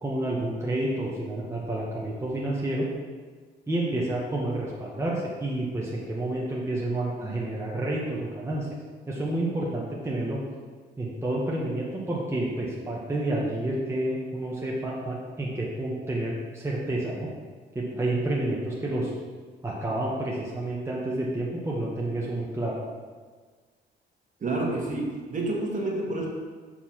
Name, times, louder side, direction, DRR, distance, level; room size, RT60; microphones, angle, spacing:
voice 1, 0.0-2.9 3.7-8.7 9.1-10.4 11.0-17.3 17.7-19.1 19.6-22.8, right 1 dB, 15° right, -5 dB, 1.1 m, -29 dB
voice 2, 24.4-26.3, right 2 dB, 40° right, -2 dB, 1.6 m, -29 dB
4.6 x 4.3 x 5.9 m, 1.5 s
cardioid pair, 90°, 20 cm